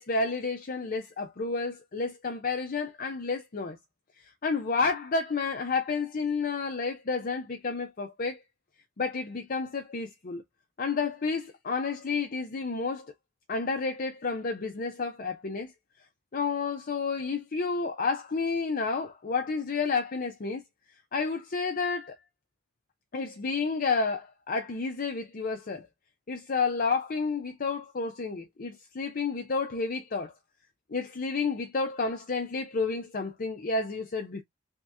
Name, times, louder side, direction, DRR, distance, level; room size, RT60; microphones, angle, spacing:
voice 1, 0.0-3.8 4.4-8.4 9.0-10.4 10.8-13.1 13.5-15.7 16.3-20.6 21.1-22.2 23.1-25.9 26.3-30.3 30.9-34.4, left 4 dB, 45° left, 0.6 m, -30 dB
3.6 x 2.8 x 3.4 m
head